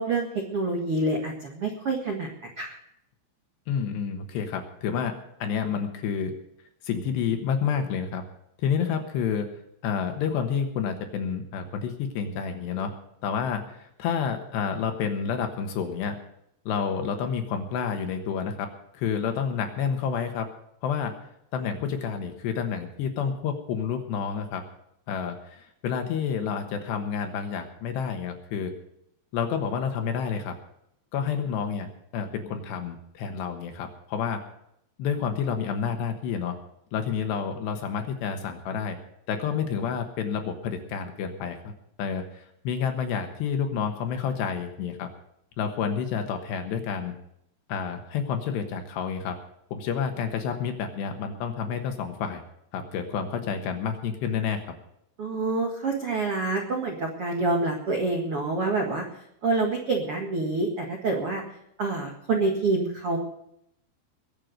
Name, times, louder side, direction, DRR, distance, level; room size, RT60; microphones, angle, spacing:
voice 1, 0.0-2.7 55.2-59.0 59.4-61.4 61.8-63.2, right 3 dB, 85° right, 1 dB, 1.2 m, -27 dB
voice 2, 3.7-5.1 5.4-6.3 6.8-8.2 8.6-9.5 9.8-12.9 13.2-16.2 16.7-18.7 18.9-20.5 20.8-21.2 21.5-24.6 25.1-28.7 29.3-30.5 31.1-34.4 35.0-36.5 36.9-39.0 39.3-41.7 42.0-45.1 45.6-47.1 47.7-49.4 49.7-52.4 52.7-54.6, left 7 dB, 70° left, 5 dB, 3.1 m, -29 dB
21.5 x 7.7 x 6.6 m, 0.76 s
omnidirectional pair, 5.8 m